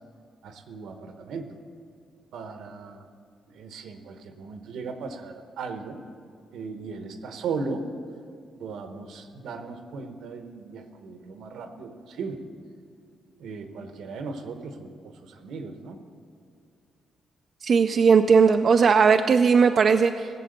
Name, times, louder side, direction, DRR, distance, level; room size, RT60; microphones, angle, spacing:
voice 1, 0.4-1.6 2.3-3.1 3.5-6.0 6.5-7.9 8.6-12.4 13.4-16.0, right 4 dB, 85° right, 6 dB, 1.1 m, -37 dB
voice 2, 17.6-20.3, right 5 dB, 50° right, 6 dB, 0.4 m, -18 dB
17.0 x 7.6 x 6.6 m, 2.2 s
cardioid pair, 95°, 0 cm